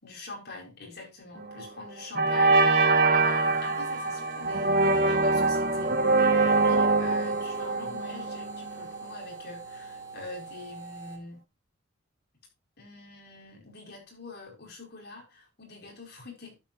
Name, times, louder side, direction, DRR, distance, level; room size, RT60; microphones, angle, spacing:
voice 1, 0.0-11.4 12.8-16.6, left 3 dB, 55° left, 4.9 m, -45 dB
sound 1, 1.4-1.7 2.2-9.0, right 3 dB, 45° right, 1.1 m, -24 dB
sound 2, 3.2-11.2, right 4 dB, 20° right, 2.1 m, -44 dB
11.5 x 8.4 x 2.7 m
head